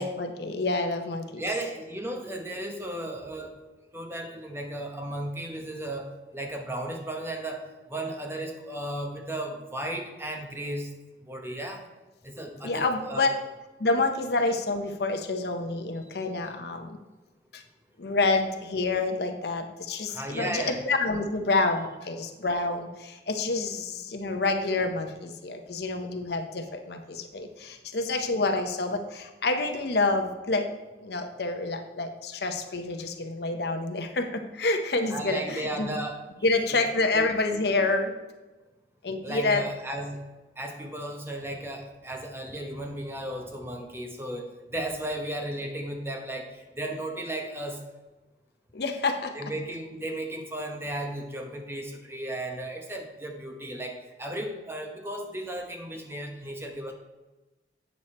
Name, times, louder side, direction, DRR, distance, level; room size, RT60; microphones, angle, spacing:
voice 1, 0.0-1.4 12.6-13.3 13.8-17.0 17.5-17.6 18.0-30.7 31.0-35.9 36.4-38.1 39.0-39.6 48.7-49.3, left 3 dB, 60° left, 5 dB, 0.7 m, -28 dB
voice 2, 1.4-3.5 3.9-6.1 6.3-10.9 11.2-11.8 12.2-13.3 20.1-20.8 35.1-36.2 36.7-36.8 37.1-37.3 39.2-40.2 40.6-47.8 49.3-56.9, right 1 dB, 15° right, 3 dB, 0.9 m, -35 dB
8.2 x 6.9 x 4.2 m, 1.2 s
head